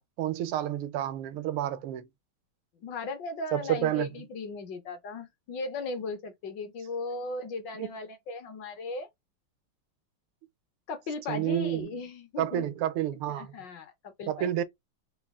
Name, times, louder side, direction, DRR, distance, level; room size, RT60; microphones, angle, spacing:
voice 1, 0.0-2.1 3.5-4.1 7.8-7.9 11.3-11.9 12.4-13.5 14.3-14.6, right 12 dB, 85° right, 1.5 m, -30 dB
voice 2, 2.8-9.1 10.9-12.7 13.3-14.5, left 3 dB, 65° left, 1.3 m, -37 dB
4.0 x 2.4 x 3.4 m
omnidirectional pair, 2.3 m